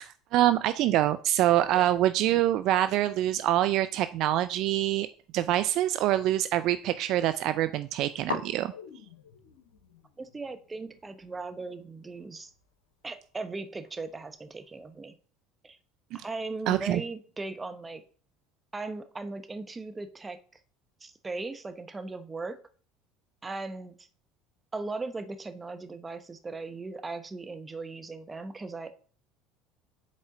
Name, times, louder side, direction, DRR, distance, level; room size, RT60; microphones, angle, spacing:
voice 1, 0.0-5.1 5.3-8.7 16.7-17.0, right 13 dB, 60° right, 12 dB, 0.3 m, -25 dB
sound 1, 4.7-6.5 6.8-7.5 7.7-7.8 8.2-15.1, left 4 dB, 85° left, 0.9 m, -45 dB
voice 2, 10.2-12.5 13.0-15.1 15.6-15.8 16.1-18.0 18.7-20.4 21.0-22.6 23.4-23.9 24.7-29.0, right 3 dB, 20° right, 10 dB, 0.9 m, -38 dB
7.4 x 4.2 x 3.7 m, 0.42 s
hypercardioid pair, 70°, 0 cm